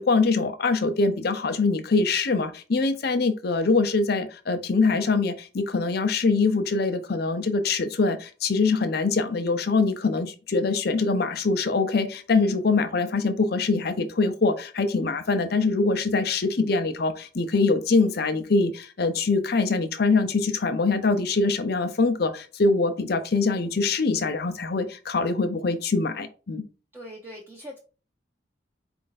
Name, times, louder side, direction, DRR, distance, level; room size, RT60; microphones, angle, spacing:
voice 1, 0.0-26.6, left 3 dB, 55° left, 0.6 m, -23 dB
voice 2, 26.9-27.8, equal, 10° right, 0.6 m, -41 dB
4.4 x 2.5 x 3.9 m
head